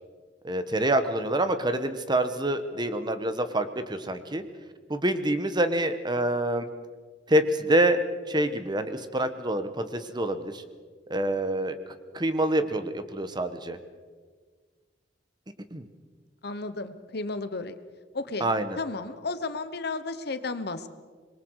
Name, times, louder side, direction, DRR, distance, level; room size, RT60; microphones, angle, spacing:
voice 1, 0.4-4.4 4.9-6.7 7.3-8.0 8.3-10.6 11.1-11.7 12.1-13.8 15.7-15.9 18.4-18.8, right 1 dB, 25° right, 10 dB, 1.2 m, -26 dB
voice 2, 16.4-17.7 18.1-18.5 18.8-20.9, left 3 dB, 60° left, 11 dB, 1.2 m, -33 dB
26.5 x 22.0 x 4.8 m, 1.5 s
head